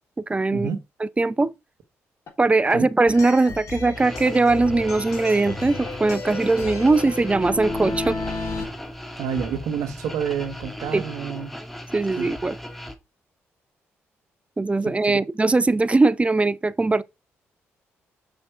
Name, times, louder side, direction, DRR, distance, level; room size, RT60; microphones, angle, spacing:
voice 1, 0.3-0.7 1.2-1.5 2.4-8.2 10.9-11.0 11.9-12.5 14.6-17.0, right 3 dB, 20° right, 0.6 m, -20 dB
sound 1, 2.3-2.4 2.7-2.8 3.1-3.2 3.5-3.6 3.9-5.2 5.5-8.6, left 3 dB, 55° left, 3.3 m, -33 dB
sound 2, 3.1-8.9, left 3 dB, 70° left, 2.2 m, -39 dB
sound 3, 4.0-12.9, equal, 5° left, 1.7 m, -37 dB
voice 2, 9.2-11.6 12.2-12.3 14.8-15.2, right 7 dB, 80° right, 1.3 m, -29 dB
6.6 x 5.2 x 4.5 m
supercardioid pair, 55°, 6 cm